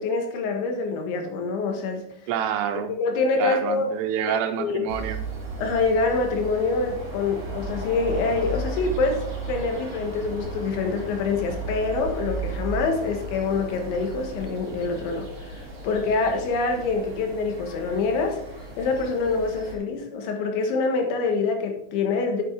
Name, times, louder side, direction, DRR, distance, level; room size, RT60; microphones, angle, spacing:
voice 1, 0.0-2.1 3.0-3.9 4.6-4.8 5.6-15.6 15.8-18.4 18.8-22.4, left 4 dB, 85° left, 4 dB, 3.7 m, -25 dB
voice 2, 2.3-2.9 3.4-5.2, right 9 dB, 80° right, 7 dB, 2.7 m, -27 dB
sound 1, 4.9-19.7, right 2 dB, 35° right, 3.0 m, -35 dB
9.3 x 6.7 x 3.6 m, 0.76 s
omnidirectional pair, 5.2 m